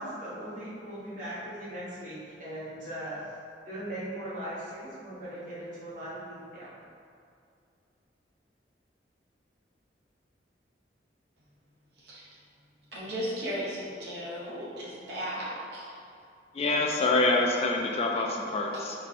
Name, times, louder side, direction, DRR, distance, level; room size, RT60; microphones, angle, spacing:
voice 1, 0.0-3.3 3.7-6.7, right 1 dB, 45° right, -9 dB, 1.3 m, -39 dB
voice 2, 12.0-12.3 12.9-16.0, equal, 65° right, -7 dB, 1.0 m, -36 dB
voice 3, 16.5-18.9, left 2 dB, 35° left, 1 dB, 0.3 m, -26 dB
4.4 x 2.1 x 4.1 m, 2.4 s
head